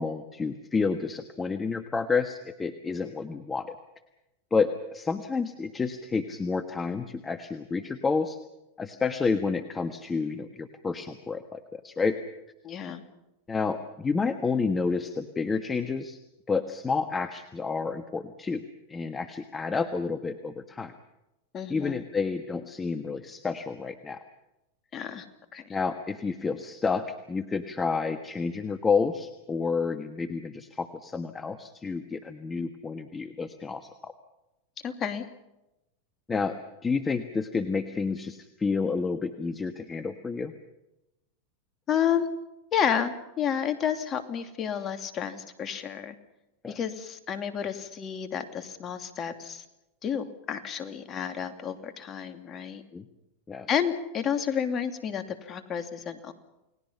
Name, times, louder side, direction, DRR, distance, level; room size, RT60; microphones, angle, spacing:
voice 1, 0.0-3.7 4.5-8.4 8.8-12.2 13.5-16.2 16.5-18.6 18.9-20.9 21.7-24.2 25.7-34.1 36.3-40.5 46.6-46.8 52.9-53.1 53.5-53.7, left 4 dB, 20° left, 9 dB, 1.4 m, -30 dB
voice 2, 12.6-13.0 21.5-22.0 24.9-25.2 25.5-25.7 34.8-35.2 41.9-42.3 42.7-46.1 46.7-49.6 50.0-52.8 53.7-56.3, left 8 dB, 35° left, 8 dB, 2.8 m, -30 dB
29.5 x 19.5 x 5.7 m, 0.94 s
hypercardioid pair, 105°, 0 cm